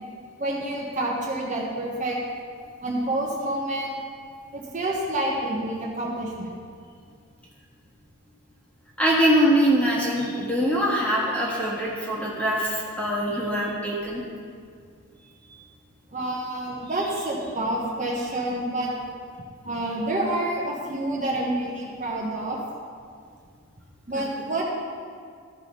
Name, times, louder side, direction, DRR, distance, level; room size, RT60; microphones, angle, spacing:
voice 1, 0.4-2.2 2.8-3.9 4.5-6.5 16.1-18.9 19.6-22.6 24.1-24.6, right 1 dB, 35° right, -3 dB, 1.2 m, -28 dB
voice 2, 9.0-14.2 24.1-24.3, equal, 5° left, -5 dB, 1.6 m, -23 dB
13.5 x 4.9 x 5.4 m, 2.2 s
head